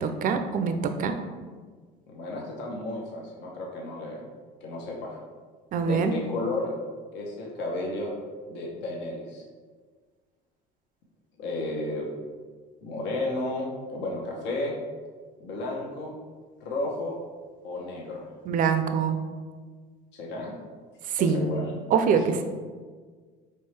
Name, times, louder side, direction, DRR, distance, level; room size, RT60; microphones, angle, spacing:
voice 1, 0.0-1.2 5.7-6.1 18.5-19.2 21.2-21.4 21.9-22.4, right 6 dB, 45° right, 7 dB, 0.4 m, -24 dB
voice 2, 2.1-4.3 4.6-5.2 5.8-6.7 7.1-8.1 8.5-9.4 11.4-12.1 12.8-14.8 15.4-16.1 16.6-17.2 17.6-18.2 20.1-20.6 21.2-21.7 22.1-22.2, left 2 dB, 65° left, -2 dB, 1.0 m, -33 dB
4.4 x 3.2 x 3.3 m, 1.5 s
supercardioid pair, 85°, 20 cm